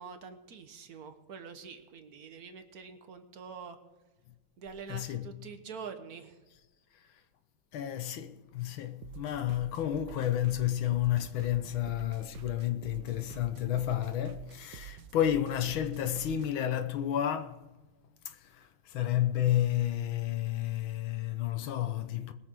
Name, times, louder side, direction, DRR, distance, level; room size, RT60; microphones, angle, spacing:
voice 1, 0.0-3.8 4.6-6.4, right 5 dB, 50° right, 1.5 m, -45 dB
voice 2, 4.9-5.4 7.7-17.7 18.2-22.3, left 12 dB, 75° left, 1.6 m, -31 dB
sound 1, 9.0-16.5, right 13 dB, 70° right, 1.3 m, -48 dB
21.0 x 7.8 x 4.5 m
omnidirectional pair, 2.3 m